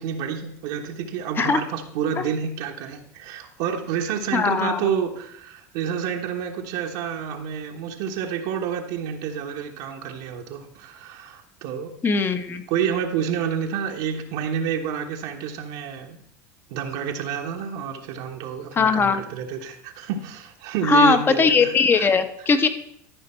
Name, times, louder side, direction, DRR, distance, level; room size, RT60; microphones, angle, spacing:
voice 1, 0.0-11.9 12.7-16.2 16.7-22.1, right 8 dB, 70° right, 2 dB, 1.2 m, -29 dB
voice 2, 4.3-4.8 12.0-12.6 18.7-19.2 20.8-22.7, left 5 dB, 25° left, 10 dB, 1.0 m, -19 dB
13.5 x 5.1 x 4.4 m, 0.72 s
supercardioid pair, 105°, 8 cm